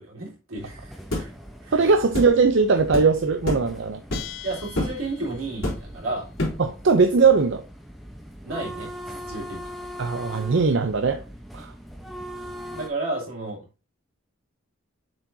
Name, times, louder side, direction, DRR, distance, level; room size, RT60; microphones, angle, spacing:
voice 1, 0.0-1.3 1.6-1.9 4.4-6.3 8.4-9.7 12.7-13.7, right 2 dB, 85° right, 3.4 m, -32 dB
sound 1, 0.6-12.9, equal, ahead, 0.8 m, -41 dB
sound 2, 1.1-1.3 2.1-2.3 2.9-3.1 3.5-3.7 4.1-4.4 4.8-5.0 5.6-6.0 6.4-6.7, left 1 dB, 75° left, 3.1 m, -27 dB
voice 2, 1.7-4.0 6.6-7.6 10.0-11.2 11.5-11.7, right 4 dB, 60° right, 0.5 m, -20 dB
Bell, 4.1-5.7, left 12 dB, 50° left, 0.7 m, -41 dB
7.3 x 4.8 x 2.7 m
head